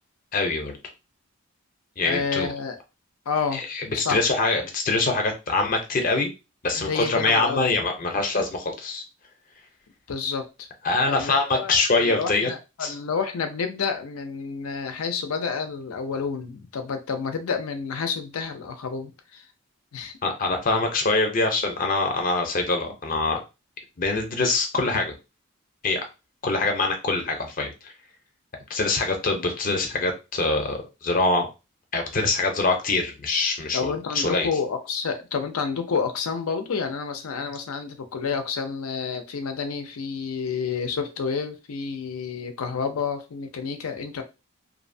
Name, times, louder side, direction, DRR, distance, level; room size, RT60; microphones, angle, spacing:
voice 1, 0.3-0.8 2.0-2.5 3.5-6.3 6.6-9.0 10.8-12.5 12.8-12.9 20.2-23.4 24.0-25.1 25.8-26.1 26.4-27.9 28.7-31.5 31.9-34.5, left 3 dB, 40° left, 0.6 m, -24 dB
voice 2, 2.0-2.8 3.3-3.7 3.9-4.3 6.8-7.7 10.1-10.7 11.1-19.4 19.9-20.2 33.7-44.2, left 5 dB, 85° left, 0.5 m, -29 dB
2.6 x 2.1 x 2.6 m
head